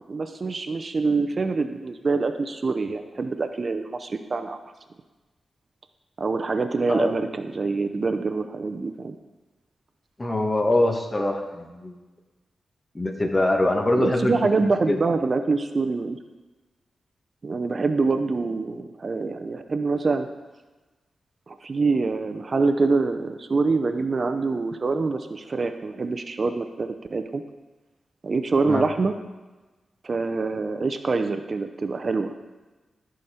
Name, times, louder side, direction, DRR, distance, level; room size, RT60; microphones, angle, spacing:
voice 1, 0.1-4.6 6.2-9.2 13.9-16.2 17.4-20.3 21.5-27.4 28.2-29.1 30.0-32.3, right 4 dB, 50° right, 8 dB, 0.6 m, -25 dB
voice 2, 10.2-11.9 12.9-15.0 28.7-28.9, left 1 dB, 30° left, 3 dB, 1.5 m, -24 dB
15.0 x 5.2 x 4.3 m, 1.2 s
cardioid pair, 60°, 0 cm